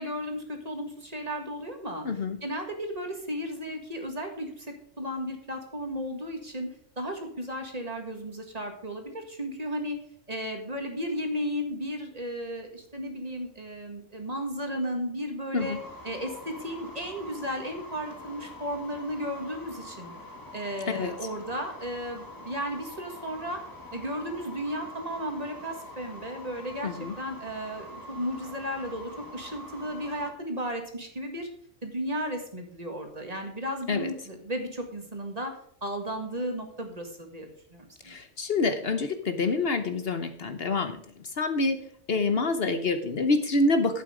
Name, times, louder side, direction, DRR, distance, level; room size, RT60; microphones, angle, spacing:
voice 1, 0.0-2.1 2.4-10.0 10.3-15.8 16.0-20.1 20.5-23.6 23.9-31.5 31.8-38.2, equal, 30° right, 4 dB, 1.9 m, -34 dB
voice 2, 2.0-2.4 15.5-15.8 21.0-21.1 26.8-27.1 33.9-34.1 38.0-41.8 42.1-44.0, left 3 dB, 55° left, 8 dB, 1.1 m, -27 dB
sound 1, 15.6-30.3, left 1 dB, 15° left, 1.9 m, -45 dB
11.5 x 8.3 x 5.0 m, 0.64 s
omnidirectional pair, 1.3 m